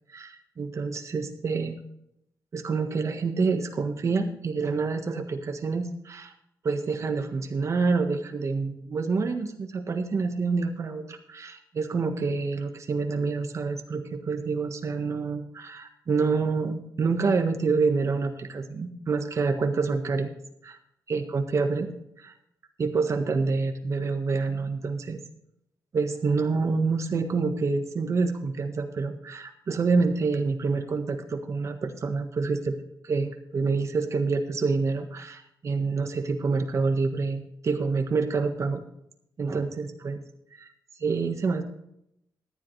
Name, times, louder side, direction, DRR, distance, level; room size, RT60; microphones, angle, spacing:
voice 1, 0.1-1.8 2.5-6.3 6.6-20.3 20.6-20.7 21.1-21.9 22.2-22.3 22.8-25.2 25.9-32.7 33.0-38.8 39.4-40.2 40.5-40.7 41.0-41.6, right 4 dB, 45° right, 6 dB, 1.5 m, -27 dB
14.5 x 10.5 x 3.3 m, 0.77 s
wide cardioid pair, 150°, 7 cm